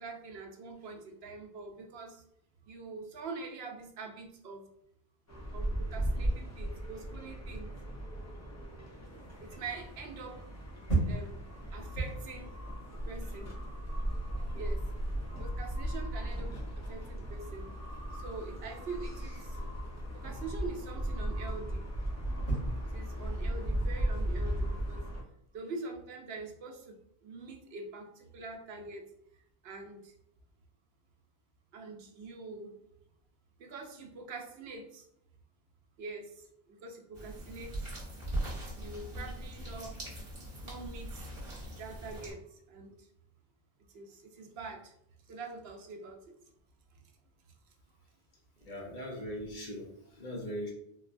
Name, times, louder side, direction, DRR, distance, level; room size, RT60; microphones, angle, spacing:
voice 1, 0.0-2.2 2.7-4.7 5.5-7.7 9.4-10.4 11.1-11.5 11.7-12.5 12.9-13.6 14.5-14.8 15.4-16.5 16.9-17.7 18.1-19.6 20.1-21.8 22.9-25.0 25.5-26.9 27.2-29.0 29.6-30.1 31.7-32.7 33.6-35.0 36.0-37.7 38.8-40.0 40.6-41.3 41.8-43.1 43.9-44.9 45.3-46.2, right 3 dB, 75° right, 3 dB, 0.8 m, -44 dB
sound 1, 5.3-25.2, right 1 dB, 20° left, 0.5 m, -37 dB
sound 2, 9.0-25.0, right 2 dB, 85° left, 1.9 m, -39 dB
sound 3, 37.1-42.3, right 1 dB, 35° right, 1.1 m, -40 dB
voice 2, 48.6-49.9 50.2-50.7, equal, 55° left, -1 dB, 0.8 m, -39 dB
3.8 x 2.2 x 2.4 m, 0.73 s
omnidirectional pair, 1.1 m